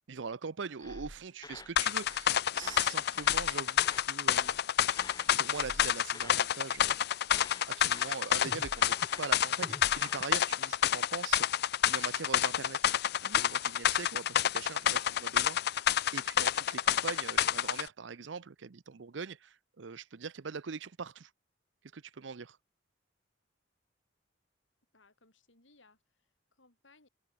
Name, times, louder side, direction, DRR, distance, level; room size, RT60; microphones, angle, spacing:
voice 1, 0.1-4.6 4.9-5.0 5.3-7.0 7.7-11.5 11.8-12.8 13.2-15.9 16.1-21.3 21.9-22.6, right 5 dB, 70° right, 0.6 m, -42 dB
sound 1, 0.8-2.3 2.6-4.1 4.3-4.6 4.9-6.5 6.7-7.0 7.3-10.2, left 2 dB, 20° left, 2.6 m, -49 dB
sound 2, 1.8-17.9, left 10 dB, 55° left, 0.5 m, -29 dB
voice 2, 24.9-27.1, left 3 dB, 80° left, 8.0 m, -65 dB
head